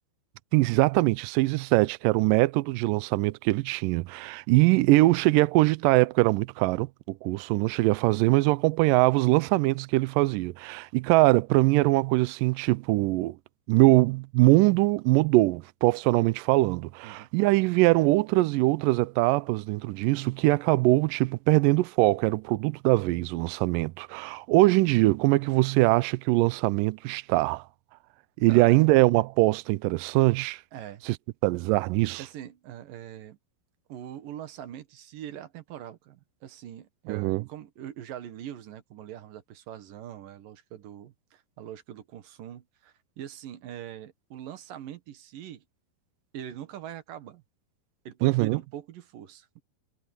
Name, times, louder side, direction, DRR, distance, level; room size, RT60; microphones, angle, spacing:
voice 1, 0.5-13.4 13.7-27.7 28.4-30.6 31.0-31.2 31.4-32.2 37.1-37.4 48.2-48.6, right 20 dB, 85° right, 1.9 m, -22 dB
voice 2, 30.7-31.0 32.2-33.4 33.9-45.6 46.3-47.4 48.0-49.6, right 11 dB, 65° right, 3.0 m, -42 dB
omnidirectional pair, 4.4 m